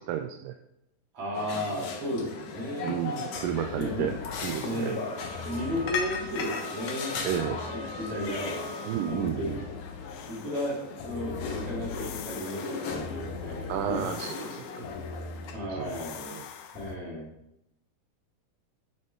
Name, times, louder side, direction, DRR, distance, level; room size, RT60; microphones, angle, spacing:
voice 1, 0.1-0.6 1.5-1.6 2.8-4.1 4.4-5.0 7.2-7.6 8.9-9.6 13.7-14.9 15.7-15.9 16.2-16.5, right 10 dB, 80° right, 5 dB, 2.2 m, -32 dB
voice 2, 1.1-3.2 3.8-4.1 4.6-5.0 5.4-7.2 7.7-8.7 9.1-9.6 10.3-14.1 15.5-16.4 16.7-17.3, left 1 dB, 45° right, -5 dB, 4.0 m, -34 dB
sound 1, 1.3-15.5, left 4 dB, 65° left, 2.4 m, -37 dB
sound 2, 3.3-17.0, left 5 dB, 80° left, 2.4 m, -42 dB
Wind instrument woodwind instrument, 4.6-9.4, right 2 dB, 25° right, 2.6 m, -45 dB
10.0 x 6.6 x 3.7 m, 0.82 s
omnidirectional pair, 3.9 m